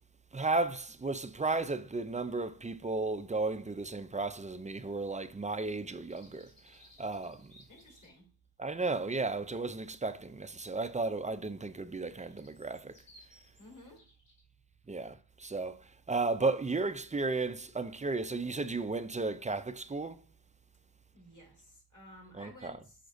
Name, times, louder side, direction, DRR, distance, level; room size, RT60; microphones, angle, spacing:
voice 1, 0.3-6.5 7.0-7.5 8.6-12.9 14.9-15.1 15.4-15.8 16.1-20.2 22.4-22.7, right 3 dB, 20° right, 0.3 m, -34 dB
sound 1, 6.0-8.2 11.8-14.4, left 1 dB, 75° left, 2.4 m, -61 dB
voice 2, 7.7-8.3 13.6-14.1 21.1-23.1, left 1 dB, 45° left, 2.6 m, -54 dB
6.3 x 5.8 x 2.5 m
wide cardioid pair, 70°, 43 cm